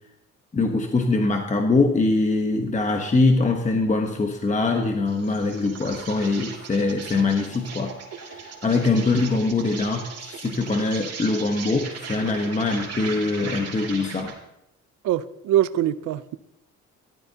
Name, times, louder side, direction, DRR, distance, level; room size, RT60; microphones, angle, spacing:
voice 1, 0.5-7.9 8.2-14.3, left 3 dB, 25° left, 3 dB, 1.2 m, -23 dB
Insect, 5.1-14.4, right 5 dB, 55° right, 2.7 m, -38 dB
voice 2, 15.0-16.4, right 12 dB, 75° right, 15 dB, 0.6 m, -23 dB
14.5 x 12.0 x 2.9 m, 0.84 s
cardioid pair, 90°, 30 cm